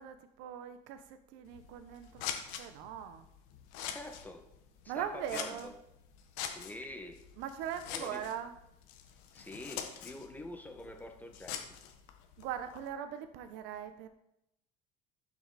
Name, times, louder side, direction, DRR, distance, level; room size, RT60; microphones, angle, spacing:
voice 1, 0.0-2.3 2.6-3.3 4.9-5.7 7.4-8.6 12.4-14.1, right 9 dB, 80° right, 9 dB, 1.0 m, -40 dB
Scissors, 1.4-12.9, left 9 dB, 80° left, 1.4 m, -45 dB
voice 2, 3.9-4.4 4.8-5.7 6.5-7.3 7.9-8.3 9.3-11.6, left 1 dB, 10° left, 4 dB, 1.6 m, -46 dB
12.0 x 6.3 x 4.2 m, 0.82 s
supercardioid pair, 100°, 19 cm